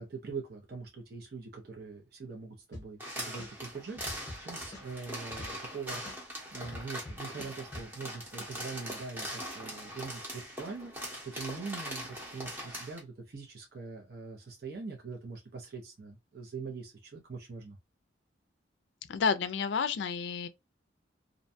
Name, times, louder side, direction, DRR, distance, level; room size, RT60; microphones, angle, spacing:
voice 1, 0.0-6.2 6.5-17.8, right 4 dB, 50° right, 0.6 m, -43 dB
sound 1, 2.7-3.1 3.4-5.8 6.1-7.9, left 1 dB, 20° left, 0.8 m, -45 dB
sound 2, 3.0-13.0, equal, 10° right, 0.8 m, -41 dB
voice 2, 19.1-20.5, left 5 dB, 65° left, 0.3 m, -30 dB
2.5 x 2.2 x 2.5 m
head